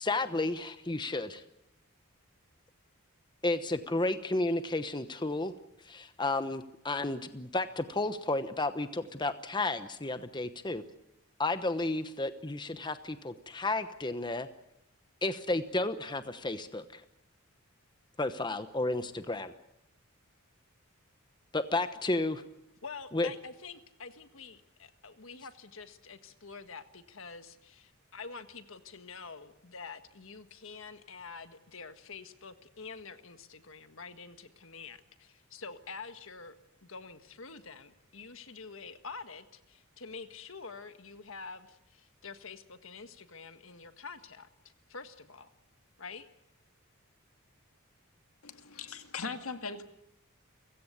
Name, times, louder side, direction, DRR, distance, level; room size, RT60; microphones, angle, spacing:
voice 1, 0.0-1.4 3.4-5.5 5.8-10.8 11.4-14.5 15.2-17.0 18.2-19.5 21.5-22.4 23.1-23.3, left 2 dB, 20° left, 10 dB, 1.0 m, -32 dB
voice 2, 22.8-36.5 36.8-44.5 44.9-45.5 46.0-46.3, left 4 dB, 65° left, 9 dB, 1.7 m, -47 dB
voice 3, 48.4-49.8, left 5 dB, 80° left, 7 dB, 2.0 m, -39 dB
30.0 x 16.5 x 8.2 m, 0.84 s
head